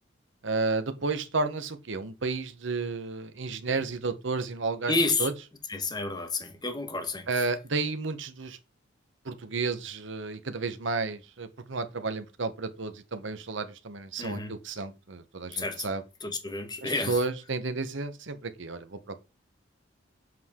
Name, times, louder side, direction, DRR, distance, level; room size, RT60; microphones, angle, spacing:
voice 1, 0.4-4.9 5.2-5.3 7.3-8.6 9.2-16.0 16.8-19.2, right 3 dB, 70° right, 1.0 m, -32 dB
voice 2, 4.9-5.3 5.7-7.5 14.2-14.6 15.5-15.9 16.2-17.2, left 3 dB, 20° left, 1.4 m, -30 dB
7.7 x 4.7 x 3.7 m
head